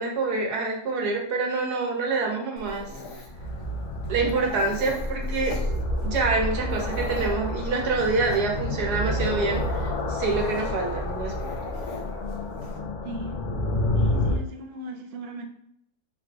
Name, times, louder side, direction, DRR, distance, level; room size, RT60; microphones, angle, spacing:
voice 1, 0.0-2.9 4.1-5.6 6.0-11.3, right 3 dB, 85° right, 0 dB, 1.5 m, -26 dB
Dog, 2.6-12.8, left 2 dB, 60° left, 0.9 m, -41 dB
sound 1, 3.2-14.4, left 1 dB, 80° left, 0.4 m, -29 dB
voice 2, 13.0-13.5 14.0-15.5, equal, 60° right, 3 dB, 0.6 m, -38 dB
3.6 x 2.5 x 4.6 m, 0.72 s
omnidirectional pair, 1.6 m